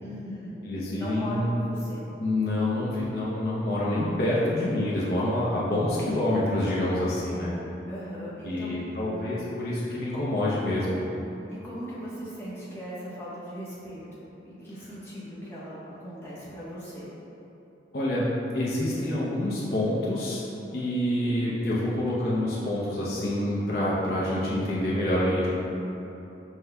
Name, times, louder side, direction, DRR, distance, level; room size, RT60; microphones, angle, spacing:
voice 1, 0.0-0.6 1.0-2.0 7.9-8.8 11.5-17.1, equal, 15° left, -10 dB, 0.9 m, -38 dB
voice 2, 0.6-1.6 2.2-7.5 8.4-11.0 17.9-18.3 18.5-20.4 20.7-25.5, left 1 dB, 55° left, -8 dB, 0.6 m, -27 dB
5.7 x 2.2 x 3.4 m, 3.0 s
head